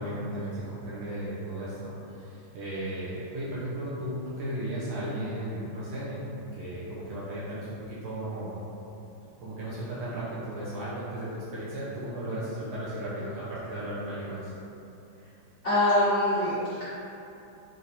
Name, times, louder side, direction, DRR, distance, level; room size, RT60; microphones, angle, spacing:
voice 1, 0.0-6.3 6.6-8.6 9.4-14.5, right 1 dB, 75° right, -10 dB, 1.6 m, -35 dB
voice 2, 15.6-16.8, left 1 dB, 50° left, -15 dB, 0.7 m, -24 dB
4.6 x 2.6 x 2.7 m, 2.8 s
omnidirectional pair, 2.4 m